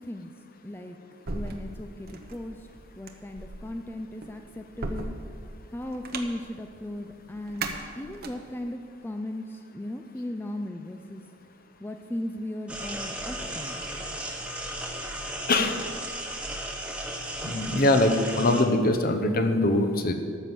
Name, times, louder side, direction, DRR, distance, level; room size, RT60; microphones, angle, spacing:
voice 1, 0.6-1.0 1.3-2.6 3.0-5.1 5.7-11.2 11.8-13.8, left 1 dB, 10° left, 5 dB, 0.4 m, -37 dB
sound 1, 1.3-8.7, right 3 dB, 50° right, 1.0 m, -38 dB
sound 2, 12.7-18.6, right 1 dB, 5° right, 1.1 m, -35 dB
voice 2, 17.4-20.1, left 2 dB, 50° left, 6 dB, 1.0 m, -22 dB
13.5 x 6.2 x 7.4 m, 2.2 s
head